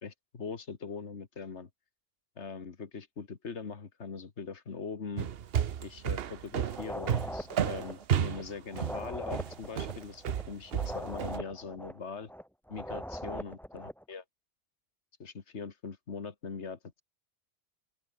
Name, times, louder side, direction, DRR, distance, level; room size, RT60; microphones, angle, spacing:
voice 1, 0.0-1.7 2.4-5.3 5.8-12.3 12.7-14.2 15.2-17.0, left 5 dB, 80° left, 2.1 m, -41 dB
sound 1, 5.2-11.4, right 9 dB, 60° right, 1.0 m, -32 dB
sound 2, 6.7-14.0, equal, ahead, 3.9 m, -41 dB
open air
omnidirectional pair, 1.2 m